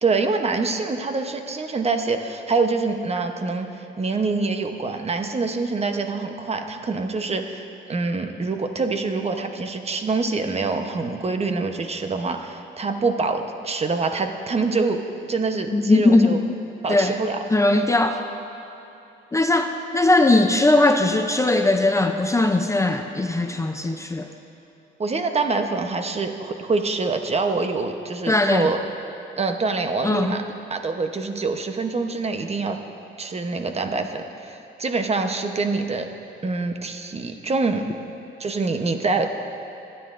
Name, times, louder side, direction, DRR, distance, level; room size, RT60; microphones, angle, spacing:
voice 1, 0.0-16.4 16.8-17.5 25.0-28.8 29.4-30.4 30.7-32.8 33.2-36.1 36.4-37.8 38.4-39.3, right 3 dB, 30° right, 6 dB, 0.9 m, -25 dB
voice 2, 15.7-16.4 16.9-17.2 17.5-18.2 19.3-24.3 28.3-28.7 30.0-30.3, left 2 dB, 15° left, 5 dB, 0.5 m, -19 dB
25.0 x 9.5 x 2.6 m, 2.9 s
cardioid pair, 90°, 20 cm